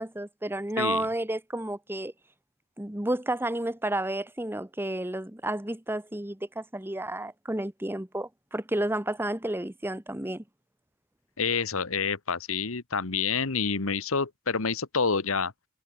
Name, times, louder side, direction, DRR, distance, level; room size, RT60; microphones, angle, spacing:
voice 1, 0.0-2.1 2.8-10.4, right 1 dB, 10° right, 1.3 m, -31 dB
voice 2, 11.4-15.5, left 5 dB, 70° left, 1.4 m, -28 dB
head